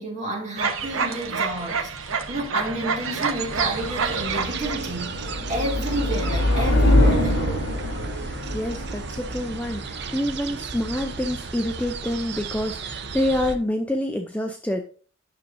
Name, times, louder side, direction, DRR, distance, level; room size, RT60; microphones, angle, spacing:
voice 1, 0.0-7.6, right 1 dB, 35° right, 2.2 m, -31 dB
sound 1, 0.6-4.8, right 5 dB, 80° right, 0.9 m, -28 dB
sound 2, 2.3-11.3, left 1 dB, 70° left, 3.3 m, -25 dB
sound 3, 3.5-13.6, right 4 dB, 55° right, 0.6 m, -34 dB
voice 2, 8.1-14.8, left 1 dB, 5° left, 0.5 m, -27 dB
9.5 x 6.1 x 2.6 m
head